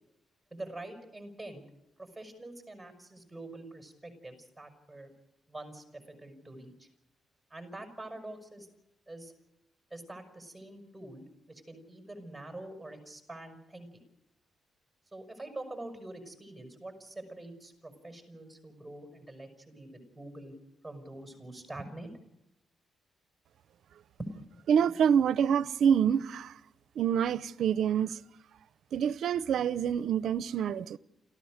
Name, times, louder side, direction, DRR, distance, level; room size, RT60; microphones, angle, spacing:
voice 1, 0.5-1.6 2.0-5.1 5.5-6.9 7.5-8.7 9.1-9.3 9.9-14.0 15.1-20.5 20.8-22.1 24.2-24.4, right 2 dB, 5° right, 6.3 m, -45 dB
voice 2, 24.7-26.5 27.0-28.2 28.9-31.0, right 8 dB, 75° right, 0.7 m, -26 dB
29.5 x 14.5 x 6.6 m
cardioid pair, 110°, 0 cm